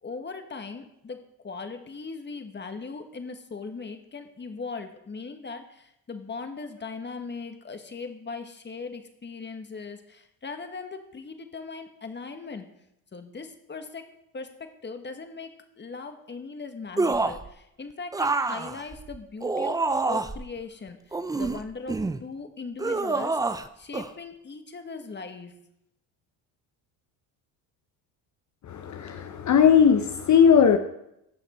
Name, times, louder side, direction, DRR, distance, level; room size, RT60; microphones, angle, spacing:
voice 1, 0.0-1.2 1.4-12.7 13.1-23.4 23.8-25.5, left 4 dB, 25° left, 7 dB, 1.5 m, -39 dB
sound 1, 17.0-17.5 18.1-20.4 21.1-22.2 22.8-23.7 23.9-24.1, right 3 dB, 10° right, 0.4 m, -27 dB
voice 2, 28.6-30.8, left 7 dB, 40° left, 7 dB, 0.8 m, -18 dB
15.5 x 5.9 x 4.3 m, 0.81 s
supercardioid pair, 80°, 44 cm